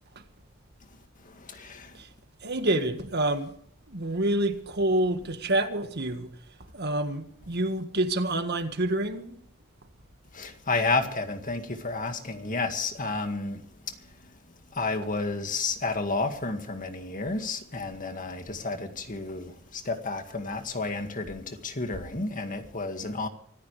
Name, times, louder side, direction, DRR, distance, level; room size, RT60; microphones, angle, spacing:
voice 1, 1.2-2.0 10.3-13.9 14.7-23.3, left 3 dB, 40° left, 2.0 m, -31 dB
voice 2, 2.4-3.5 3.9-6.3 6.7-9.4, right 1 dB, 55° right, 1.7 m, -27 dB
25.5 x 14.0 x 3.3 m
head